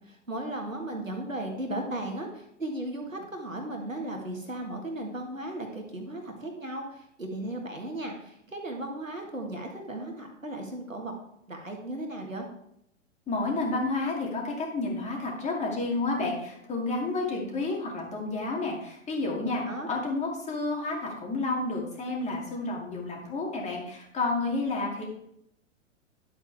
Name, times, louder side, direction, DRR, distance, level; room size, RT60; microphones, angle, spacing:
voice 1, 0.1-11.1 11.5-12.5 19.6-19.9, right 1 dB, 90° right, 2 dB, 1.8 m, -36 dB
voice 2, 13.3-25.1, left 3 dB, 20° left, -1 dB, 2.5 m, -30 dB
11.0 x 8.2 x 3.5 m, 0.77 s
figure-of-eight pair, 105°, 38 cm